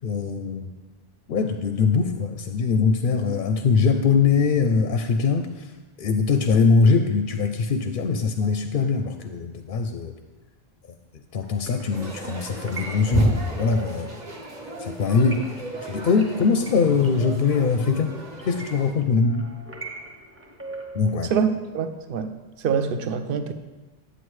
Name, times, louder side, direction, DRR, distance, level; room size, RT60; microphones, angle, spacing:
voice 1, 0.0-0.7 1.3-5.7 6.0-10.1 11.3-14.1 14.8-15.5 15.8-18.2 18.5-19.5 20.9-21.3, left 5 dB, 65° left, 6 dB, 0.7 m, -22 dB
sound 1, 11.4-21.2, right 2 dB, 15° right, 0.7 m, -42 dB
sound 2, 11.9-18.9, equal, 45° right, 1.4 m, -30 dB
voice 2, 21.2-22.3 22.6-23.5, right 6 dB, 65° right, 9 dB, 0.8 m, -25 dB
9.9 x 8.2 x 3.1 m, 1.2 s
omnidirectional pair, 1.0 m